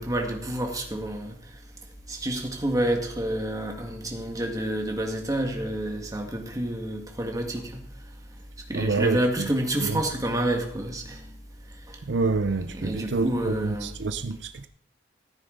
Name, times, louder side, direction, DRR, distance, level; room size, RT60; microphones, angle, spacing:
voice 1, 0.0-1.4 2.1-7.8 8.7-11.3 12.7-13.9, right 1 dB, 20° right, 1.8 m, -28 dB
voice 2, 8.7-9.5 9.8-10.0 12.1-14.7, right 3 dB, 75° right, 0.6 m, -27 dB
14.5 x 9.3 x 3.9 m
head